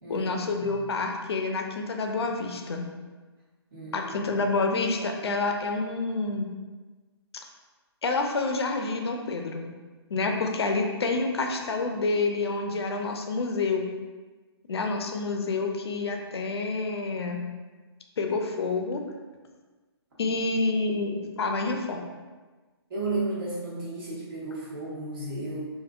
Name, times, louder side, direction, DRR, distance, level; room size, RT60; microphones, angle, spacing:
voice 1, 0.1-2.9 3.9-6.5 8.0-9.7 10.1-13.9 14.7-17.4 18.2-19.0 20.2-22.0, left 3 dB, 70° left, 3 dB, 0.5 m, -28 dB
voice 2, 3.7-4.1 22.9-25.7, right 2 dB, 55° right, -6 dB, 1.4 m, -33 dB
3.7 x 2.5 x 2.4 m, 1.3 s
hypercardioid pair, 145°, 14 cm